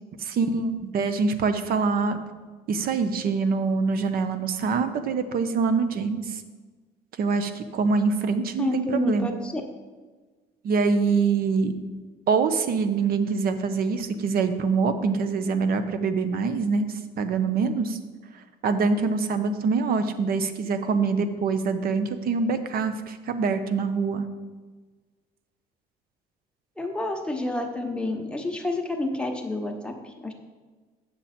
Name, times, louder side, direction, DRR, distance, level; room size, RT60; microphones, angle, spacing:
voice 1, 0.2-2.2 2.7-6.4 7.2-9.3 10.6-11.7 12.3-16.9 17.2-18.0 18.6-24.3, right 4 dB, 60° right, 10 dB, 0.8 m, -24 dB
voice 2, 8.6-9.6 26.8-30.3, left 2 dB, 5° left, 2 dB, 1.1 m, -29 dB
8.1 x 7.0 x 4.3 m, 1.4 s
cardioid pair, 110°, 17 cm